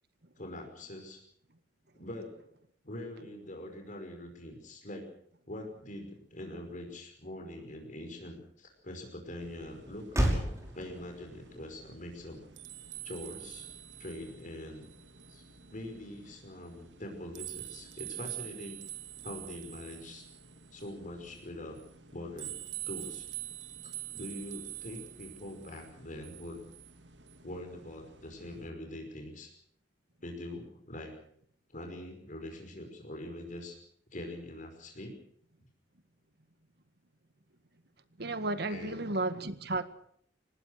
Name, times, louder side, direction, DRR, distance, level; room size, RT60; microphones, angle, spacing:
voice 1, 0.4-1.2 1.9-2.5 2.8-5.1 5.5-10.3 10.7-12.4 13.0-13.7 14.0-14.9 15.3-15.4 15.7-18.8 19.2-20.2 20.7-21.8 22.1-22.6 22.8-23.2 23.8-26.6 27.4-29.5 30.2-31.1 31.7-33.8 34.1-35.2 38.7-39.1, left 1 dB, 45° left, 5.3 m, -43 dB
Motor vehicle (road), 6.2-14.7, right 1 dB, 15° right, 5.9 m, -38 dB
sound 1, 9.4-28.7, right 12 dB, 90° right, 2.6 m, -47 dB
voice 2, 38.2-39.8, right 2 dB, 65° right, 1.7 m, -33 dB
25.5 x 19.5 x 6.6 m
head